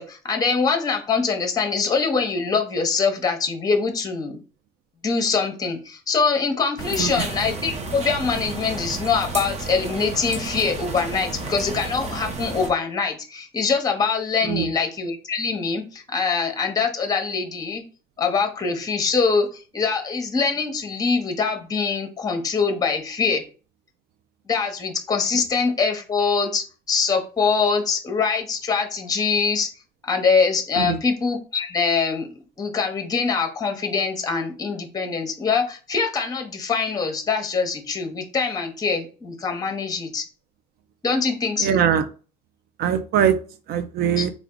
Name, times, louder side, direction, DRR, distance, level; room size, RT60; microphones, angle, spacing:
voice 1, 0.0-4.4 5.0-17.8 18.2-23.4 24.5-29.7 30.0-32.3 32.6-40.2 41.0-41.8 44.2-44.3, left 5 dB, 20° left, 6 dB, 0.8 m, -23 dB
sound 1, 6.8-12.7, right 3 dB, 40° right, 0.8 m, -32 dB
voice 2, 41.6-42.1 42.8-43.4 43.7-44.3, right 8 dB, 70° right, 11 dB, 0.6 m, -21 dB
3.4 x 2.4 x 3.7 m, 0.36 s
cardioid pair, 110°, 17 cm